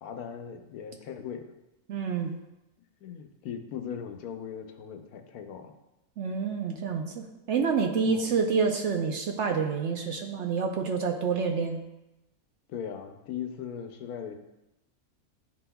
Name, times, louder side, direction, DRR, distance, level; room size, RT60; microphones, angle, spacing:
voice 1, 0.0-1.5 3.0-5.7 8.0-8.4 12.7-14.3, left 8 dB, 90° left, 6 dB, 1.2 m, -39 dB
voice 2, 1.9-2.3 6.2-11.8, right 5 dB, 65° right, 3 dB, 0.8 m, -28 dB
10.5 x 4.0 x 2.2 m, 0.94 s
omnidirectional pair, 1.5 m